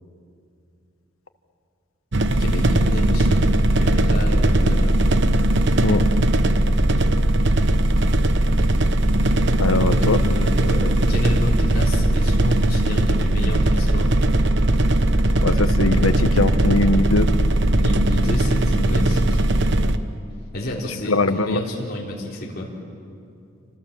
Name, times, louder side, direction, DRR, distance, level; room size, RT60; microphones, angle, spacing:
sound 1, 2.1-20.0, right 1 dB, 60° right, 1.0 m, -19 dB
voice 1, 2.3-4.9 9.8-14.1 17.7-19.4 20.5-22.7, left 1 dB, 50° left, -3 dB, 4.1 m, -29 dB
voice 2, 9.6-10.2 15.4-17.3 21.1-21.6, left 2 dB, 90° left, 9 dB, 1.4 m, -20 dB
29.0 x 26.0 x 7.4 m, 2.5 s
head